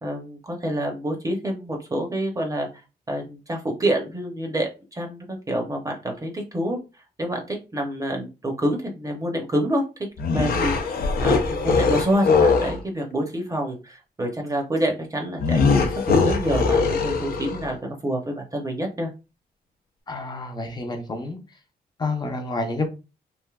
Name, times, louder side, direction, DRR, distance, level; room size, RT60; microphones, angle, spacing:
voice 1, 0.0-2.7 3.1-6.8 7.2-9.8 10.3-17.8 18.0-19.1, right 1 dB, 20° right, 2 dB, 0.7 m, -27 dB
sound 1, 10.2-12.8 15.4-17.7, left 4 dB, 65° left, 0.6 m, -21 dB
voice 2, 20.1-21.4 22.0-22.9, left 2 dB, 25° left, 5 dB, 0.6 m, -29 dB
3.3 x 2.6 x 2.3 m, 0.30 s
cardioid pair, 130°, 16 cm